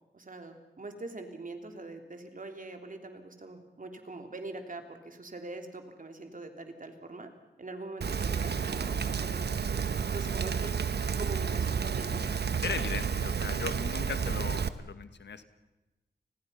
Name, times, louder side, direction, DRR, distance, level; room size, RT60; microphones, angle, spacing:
voice 1, 0.1-7.3 7.6-9.4 10.1-10.7 11.2-12.2, right 2 dB, 50° right, 5 dB, 3.4 m, -43 dB
Rain, 8.0-14.7, right 6 dB, 70° right, 1.1 m, -31 dB
voice 2, 12.6-15.5, left 6 dB, 90° left, 11 dB, 1.5 m, -38 dB
29.5 x 20.5 x 5.7 m, 1.0 s
wide cardioid pair, 70°, 18 cm